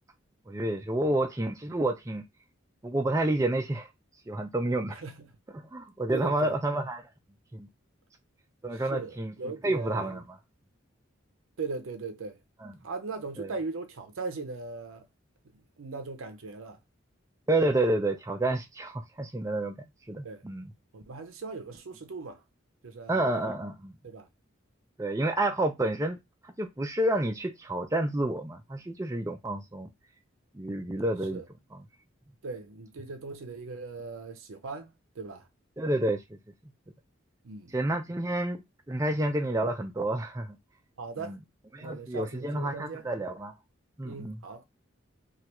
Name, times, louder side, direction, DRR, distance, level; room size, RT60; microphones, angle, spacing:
voice 1, 0.5-2.2 2.8-3.9 4.3-5.0 5.5-7.0 7.5-7.7 8.6-9.3 9.6-10.4 12.6-12.7 13.4-13.5 17.5-19.7 20.1-20.7 23.1-23.9 25.0-26.2 26.6-29.9 30.5-31.4 31.7-31.8 35.8-36.2 37.7-38.6 38.9-40.6 41.2-41.4 41.7-43.5 44.0-44.4, right 1 dB, 15° right, 0.4 m, -29 dB
voice 2, 5.0-5.3 6.1-6.6 8.7-10.2 11.6-12.4 12.8-15.1 15.8-16.8 20.2-20.4 20.9-22.4 22.8-23.4 24.0-24.3 31.3-31.5 32.4-35.5 37.4-37.7 41.0-41.4 41.8-43.1 44.0-44.7, right 4 dB, 90° right, 0.6 m, -39 dB
3.2 x 2.4 x 2.9 m
head